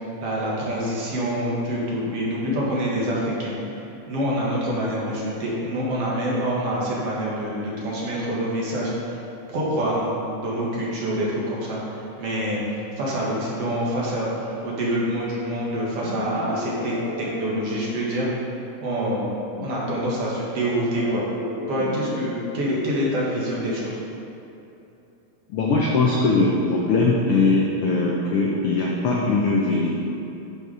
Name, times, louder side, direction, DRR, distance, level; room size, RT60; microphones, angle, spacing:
voice 1, 0.2-9.2 9.5-10.1 10.4-18.3 18.8-19.3 19.6-21.3 21.7-24.0, equal, 55° right, -5 dB, 2.3 m, -26 dB
sound 1, 16.0-18.4 20.8-24.1, left 1 dB, 70° left, 1.8 m, -36 dB
voice 2, 25.5-30.0, left 3 dB, 85° left, -2 dB, 1.2 m, -21 dB
9.6 x 5.6 x 4.8 m, 2.9 s
omnidirectional pair, 3.5 m